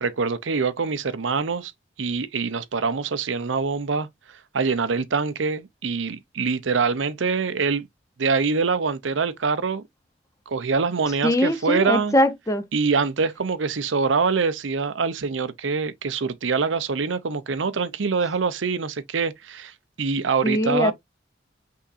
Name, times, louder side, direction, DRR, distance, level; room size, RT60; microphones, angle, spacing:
voice 1, 0.0-1.7 2.0-4.1 4.5-7.9 8.2-9.8 10.5-12.1 12.7-20.9, right 5 dB, 85° right, 0.6 m, -24 dB
voice 2, 11.2-12.6 20.4-20.9, left 1 dB, 15° left, 0.6 m, -21 dB
5.6 x 3.6 x 2.5 m
head